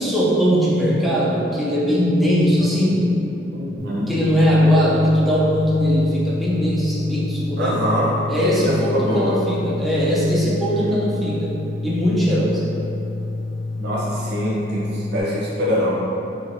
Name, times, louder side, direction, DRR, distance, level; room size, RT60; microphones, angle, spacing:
voice 1, 0.0-3.1 4.1-7.8 8.3-11.6 11.8-12.6, equal, ahead, -7 dB, 0.4 m, -19 dB
voice 2, 3.5-4.2 7.6-8.1 8.3-9.4 10.7-11.1 13.8-16.0, equal, 60° right, -5 dB, 0.6 m, -24 dB
sound 1, 3.8-15.2, left 3 dB, 50° left, 0.6 m, -29 dB
3.0 x 2.7 x 2.5 m, 2.8 s
head